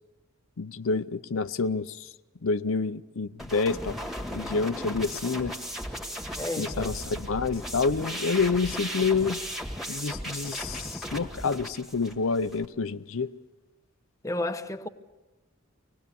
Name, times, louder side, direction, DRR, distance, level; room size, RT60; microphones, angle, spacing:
voice 1, 0.6-2.1 2.4-4.0 4.3-5.5 6.6-9.4 9.9-13.3, left 4 dB, 75° left, 0.6 m, -28 dB
sound 1, 3.4-12.7, equal, ahead, 1.8 m, -36 dB
voice 2, 6.4-6.9 14.2-14.9, left 2 dB, 15° left, 0.8 m, -32 dB
25.0 x 19.0 x 7.0 m
head